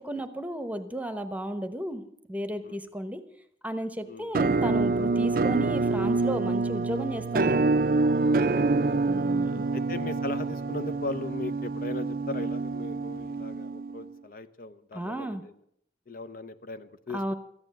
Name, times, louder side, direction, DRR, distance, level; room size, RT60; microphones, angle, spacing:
voice 1, 0.0-2.0 2.3-3.2 3.6-7.6 9.0-9.7 14.9-15.4 17.1-17.3, right 1 dB, 10° right, 10 dB, 0.9 m, -34 dB
Musical instrument, 4.3-14.1, right 3 dB, 50° right, 0.5 m, -26 dB
voice 2, 8.2-9.0 9.7-15.5 16.1-17.2, left 2 dB, 50° left, 11 dB, 0.7 m, -38 dB
14.0 x 9.8 x 7.8 m, 0.71 s
head